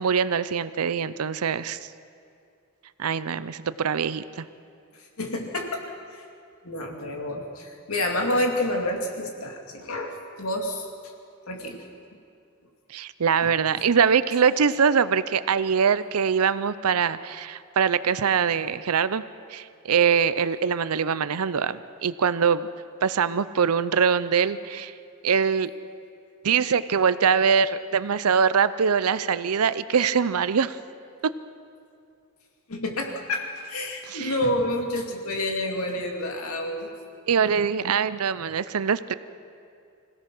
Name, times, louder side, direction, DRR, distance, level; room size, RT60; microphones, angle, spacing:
voice 1, 0.0-1.8 3.0-4.4 12.9-19.2 19.5-22.7 23.0-24.9 25.2-25.7 26.4-30.8 31.2-31.3 34.1-34.3 37.3-39.1, right 6 dB, 85° right, 15 dB, 0.6 m, -23 dB
voice 2, 4.9-5.8 6.1-6.2 6.6-10.9 11.5-11.8 13.7-13.8 32.7-36.9, left 1 dB, 75° left, 1 dB, 2.6 m, -29 dB
25.5 x 16.5 x 6.1 m, 2.4 s
head